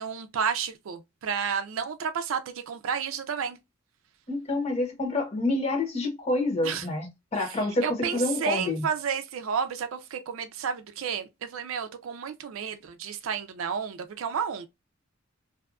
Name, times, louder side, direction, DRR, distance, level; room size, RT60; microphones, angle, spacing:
voice 1, 0.0-3.6 6.6-6.8 7.8-14.7, right 7 dB, 75° right, 0.4 m, -31 dB
voice 2, 4.3-8.9, left 2 dB, 30° left, 1.0 m, -28 dB
2.6 x 2.3 x 2.3 m
head